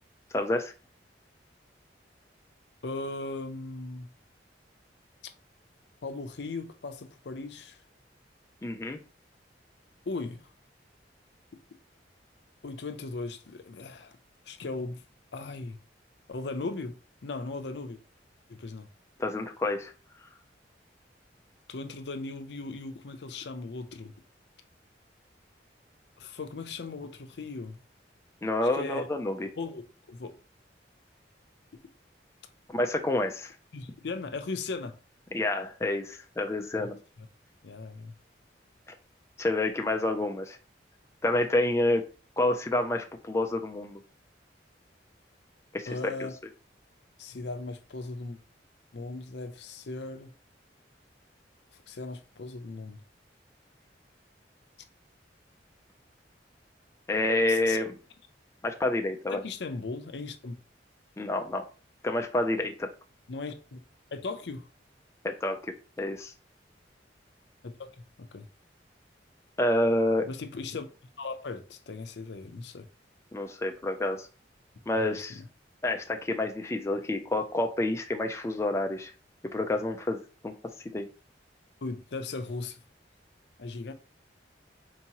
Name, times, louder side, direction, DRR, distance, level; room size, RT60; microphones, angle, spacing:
voice 1, 0.3-0.7 8.6-9.0 19.2-19.9 28.4-29.5 32.7-33.5 35.3-37.0 39.4-40.6 41.2-42.1 42.4-44.0 45.7-46.3 57.1-57.9 58.6-59.4 61.2-61.7 62.0-62.9 65.2-66.3 69.6-70.3 73.3-74.3 74.9-75.4 75.8-79.1 79.5-81.1, left 1 dB, 15° left, 0.3 m, -28 dB
voice 2, 2.8-4.1 6.0-7.8 10.1-10.4 12.6-14.2 14.5-15.0 15.3-15.8 16.3-16.9 17.2-18.0 18.5-18.9 21.7-24.1 26.2-27.8 28.7-29.1 29.6-30.4 33.7-34.9 36.7-36.8 37.2-37.3 37.6-38.1 45.9-46.3 47.2-48.4 48.9-50.3 51.9-53.0 57.5-57.8 59.3-60.6 63.3-63.8 64.1-64.7 67.6-68.0 68.3-68.5 70.2-70.9 71.2-72.9 75.0-75.5 81.8-82.8 83.6-83.9, left 3 dB, 70° left, 0.5 m, -38 dB
4.5 x 2.9 x 2.9 m
head